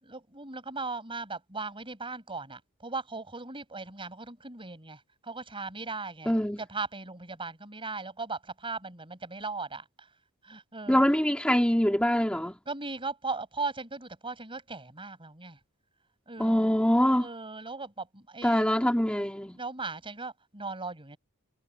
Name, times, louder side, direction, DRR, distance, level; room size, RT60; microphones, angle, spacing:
voice 1, 0.0-10.1 10.4-11.0 12.7-15.6 16.3-16.7 17.2-18.7 19.5-21.2, right 3 dB, 25° right, 5.6 m, -38 dB
voice 2, 6.2-6.6 10.9-12.6 16.4-17.3 18.4-19.6, equal, 5° left, 3.2 m, -24 dB
head